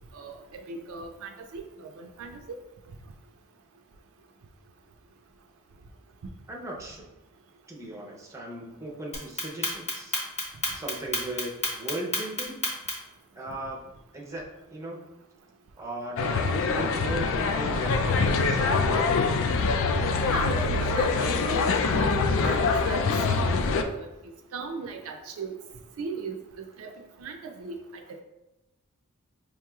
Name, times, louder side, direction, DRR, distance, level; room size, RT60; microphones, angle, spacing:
voice 1, 0.1-2.6 20.3-23.4 24.0-24.1 24.5-25.5 26.0-27.8 28.1-28.2, right 4 dB, 65° right, 4 dB, 0.4 m, -38 dB
voice 2, 6.5-7.1 7.7-10.2 10.7-12.6 13.3-13.8 14.1-15.0 15.8-19.2, right 1 dB, 15° right, -1 dB, 0.6 m, -37 dB
Clock, 9.1-13.1, left 2 dB, 30° left, 0.9 m, -29 dB
sound 1, 16.2-23.8, left 4 dB, 60° left, 0.3 m, -24 dB
5.2 x 2.9 x 2.3 m, 0.99 s
head